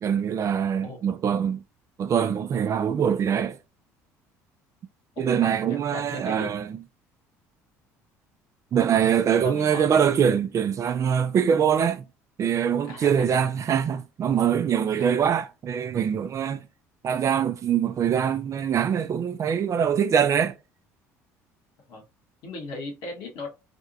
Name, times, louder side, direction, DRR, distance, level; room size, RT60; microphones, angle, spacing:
voice 1, 0.0-1.6 2.0-3.6 5.2-6.8 8.7-12.1 12.4-16.6 17.0-20.5, right 8 dB, 45° right, 0.5 m, -23 dB
voice 2, 5.1-6.5 9.3-10.0 12.9-13.4 15.0-15.2 21.9-22.0 22.4-23.5, left 3 dB, 70° left, 1.5 m, -38 dB
3.4 x 2.7 x 2.6 m
supercardioid pair, 75°, 7 cm